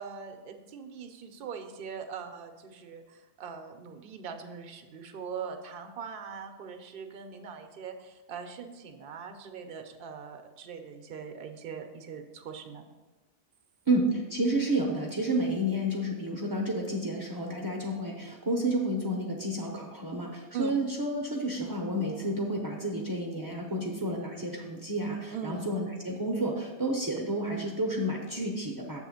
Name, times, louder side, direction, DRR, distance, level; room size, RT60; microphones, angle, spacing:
voice 1, 0.0-12.9 20.5-20.7 25.3-25.6, right 6 dB, 55° right, 6 dB, 0.8 m, -41 dB
voice 2, 13.9-29.0, right 1 dB, 20° right, -1 dB, 0.7 m, -30 dB
7.5 x 3.6 x 6.3 m, 1.2 s
omnidirectional pair, 1.2 m